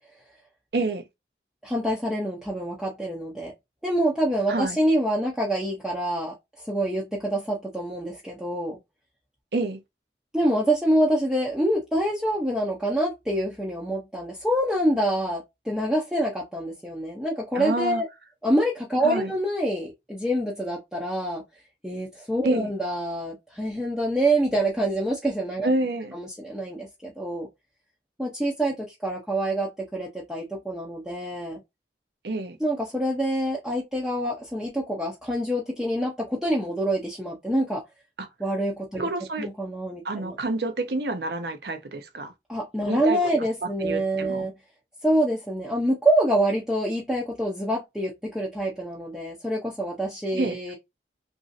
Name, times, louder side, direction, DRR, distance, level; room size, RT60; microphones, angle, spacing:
voice 1, 0.7-1.1 4.5-4.8 9.5-9.8 17.5-18.0 19.0-19.3 22.4-22.7 25.6-26.1 32.2-32.6 38.2-38.3 38.9-39.5 40.0-42.3 42.8-43.2 43.8-44.5 50.4-50.6, right 2 dB, 60° right, 0.6 m, -28 dB
voice 2, 1.6-3.5 3.8-8.8 10.3-18.1 18.4-21.4 21.8-25.7 26.1-27.5 28.2-31.6 32.6-37.8 38.4-39.1 39.4-40.4 42.5-44.5 45.0-50.8, right 1 dB, 5° right, 0.5 m, -26 dB
2.9 x 2.6 x 2.5 m
head